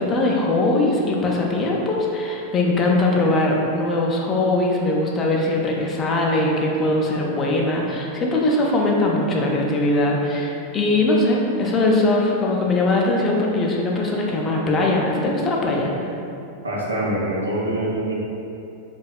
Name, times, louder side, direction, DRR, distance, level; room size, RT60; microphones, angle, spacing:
voice 1, 0.0-15.9, left 2 dB, 25° left, -2 dB, 0.3 m, -21 dB
voice 2, 16.6-18.1, right 1 dB, 75° right, -5 dB, 0.5 m, -24 dB
2.6 x 2.1 x 2.3 m, 2.7 s
figure-of-eight pair, 90°, 0 cm